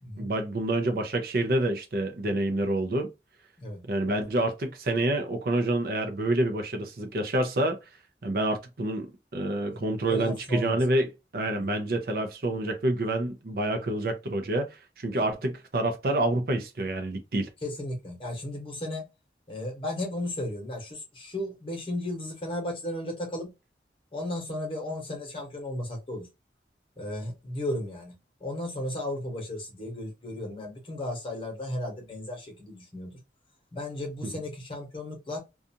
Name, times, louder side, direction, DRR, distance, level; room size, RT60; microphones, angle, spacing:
voice 1, 0.2-3.1 3.8-7.8 8.2-11.1 11.3-17.5, right 1 dB, 55° right, 0.5 m, -28 dB
voice 2, 10.1-10.8 11.5-11.7 15.1-15.2 17.6-19.1 19.5-23.5 24.1-26.3 27.0-28.1 28.4-33.2 33.7-35.4, left 1 dB, 30° left, 1.0 m, -34 dB
2.5 x 2.3 x 2.6 m
head